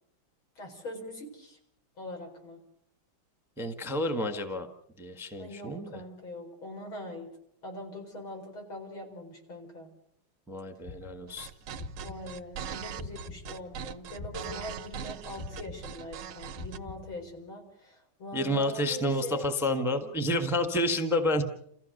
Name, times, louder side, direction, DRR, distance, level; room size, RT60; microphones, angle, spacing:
voice 1, 0.6-1.6 2.0-2.6 5.4-7.3 7.6-9.9 12.0-19.5 19.8-20.1, left 1 dB, 70° left, 2 dB, 5.6 m, -42 dB
voice 2, 3.6-4.7 5.0-6.0 10.5-11.5 18.3-21.4, left 1 dB, ahead, 7 dB, 1.3 m, -29 dB
sound 1, 10.8-13.8 14.1-17.5, left 3 dB, 30° left, 2.1 m, -44 dB
sound 2, 11.3-16.8, right 8 dB, 90° right, 1.9 m, -40 dB
29.0 x 15.0 x 6.6 m, 0.72 s
omnidirectional pair, 2.3 m